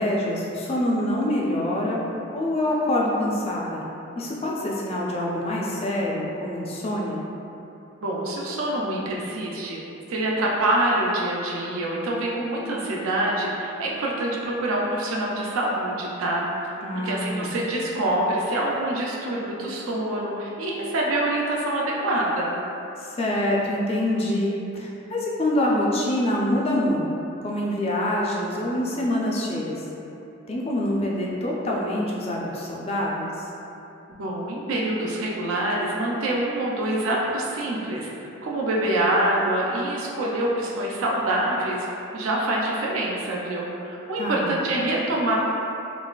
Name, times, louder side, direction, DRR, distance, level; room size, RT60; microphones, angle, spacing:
voice 1, 0.0-2.0 2.3-3.8 4.2-7.2 16.8-17.5 23.0-27.1 27.4-29.9 30.5-33.5 44.2-44.5, left 1 dB, 30° left, -4 dB, 0.3 m, -25 dB
voice 2, 8.0-9.8 10.1-16.7 17.0-22.6 34.1-45.4, right 1 dB, 70° right, -3 dB, 0.4 m, -26 dB
3.8 x 2.4 x 2.3 m, 2.9 s
head